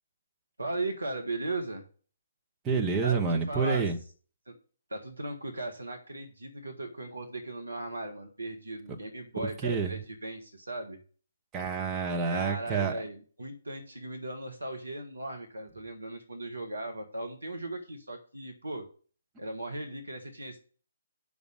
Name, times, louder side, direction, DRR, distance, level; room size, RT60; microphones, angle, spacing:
voice 1, 0.6-1.8 3.0-3.9 4.5-4.6 4.9-11.0 12.3-18.8 19.4-20.6, right 2 dB, 75° right, 1.4 m, -37 dB
voice 2, 2.6-4.0 9.4-9.9 11.5-13.0, right 5 dB, 15° right, 1.3 m, -28 dB
6.9 x 6.2 x 6.7 m
figure-of-eight pair, 135°, 0 cm